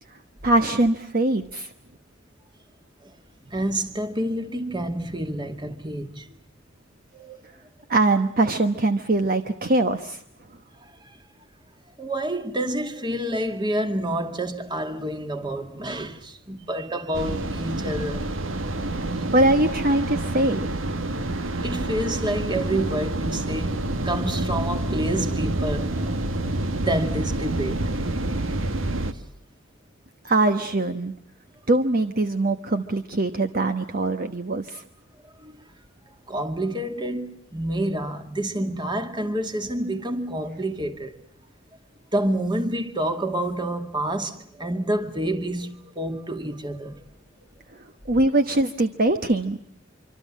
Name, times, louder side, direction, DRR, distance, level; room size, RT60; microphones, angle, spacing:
voice 1, 0.4-1.7 7.9-10.2 19.3-20.7 30.2-31.1 31.7-34.8 48.1-49.6, right 2 dB, 50° right, 1.2 m, -22 dB
voice 2, 3.5-6.4 7.1-7.4 10.8-11.2 12.0-18.3 21.6-23.8 24.0-26.2 26.9-27.8 35.4-35.6 36.3-41.1 42.1-47.0, right 1 dB, 25° right, 2.2 m, -28 dB
sound 1, 17.1-29.1, right 2 dB, 90° right, 1.7 m, -27 dB
25.5 x 25.5 x 7.5 m
head